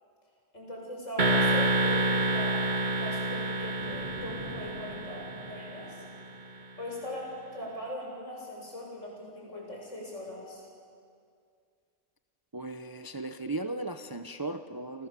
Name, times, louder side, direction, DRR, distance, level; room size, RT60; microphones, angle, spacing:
voice 1, 0.5-6.0 6.8-10.7, left 1 dB, 70° left, -2 dB, 7.8 m, -40 dB
sound 1, 1.2-6.1, right 2 dB, 35° right, 1.6 m, -28 dB
sound 2, 3.6-6.9, right 1 dB, 5° right, 2.7 m, -50 dB
voice 2, 12.5-15.1, right 2 dB, 20° right, 8 dB, 0.7 m, -36 dB
29.5 x 26.5 x 7.6 m, 2.2 s
omnidirectional pair, 1.4 m